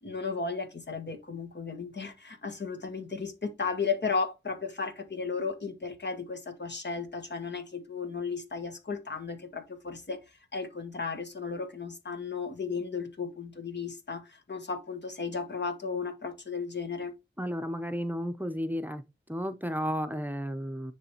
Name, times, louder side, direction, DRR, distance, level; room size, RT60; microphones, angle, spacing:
voice 1, 0.0-10.2 10.5-17.1, left 5 dB, 60° left, 1.2 m, -34 dB
voice 2, 17.4-19.0 19.3-20.9, equal, 10° right, 0.7 m, -33 dB
9.9 x 3.4 x 2.9 m
wide cardioid pair, 55°, 20 cm